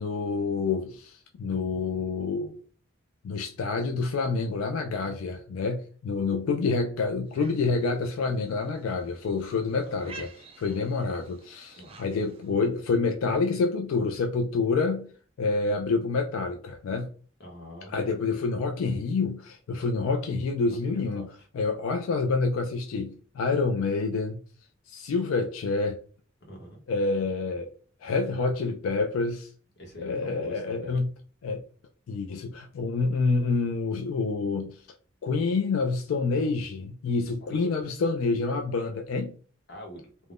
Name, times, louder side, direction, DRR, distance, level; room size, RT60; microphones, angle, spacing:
voice 1, 0.0-2.6 3.2-10.3 10.6-15.1 15.4-17.1 17.9-21.3 21.5-24.4 24.9-26.0 26.9-27.7 28.0-29.5 30.0-31.1 31.4-31.6 32.1-34.9 35.2-39.3, left 4 dB, 85° left, 0.3 m, -27 dB
sound 1, 7.3-12.6, right 4 dB, 30° right, 0.3 m, -51 dB
voice 2, 17.4-17.9 20.8-21.3 26.5-26.8 29.8-31.0 37.4-37.7 39.7-40.1, equal, 55° left, 0.9 m, -43 dB
2.4 x 2.1 x 3.4 m
head